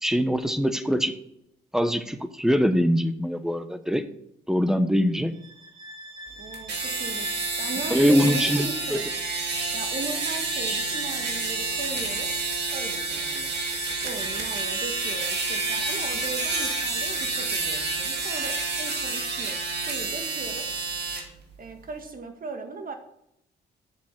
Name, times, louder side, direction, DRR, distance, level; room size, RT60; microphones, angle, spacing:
voice 1, 0.0-1.1 1.7-4.0 4.5-5.3 7.9-9.0, equal, 5° right, 10 dB, 1.1 m, -23 dB
Bowed string instrument, 5.3-19.2, equal, 30° right, 3.4 m, -39 dB
voice 2, 6.4-9.0 9.7-12.3 12.7-13.5 14.0-19.6 19.9-20.7 21.6-22.9, right 3 dB, 50° right, 5 dB, 2.1 m, -38 dB
sound 1, 6.5-21.2, right 3 dB, 65° right, 2.3 m, -29 dB
7.8 x 6.9 x 7.7 m, 0.78 s
supercardioid pair, 65°, 19 cm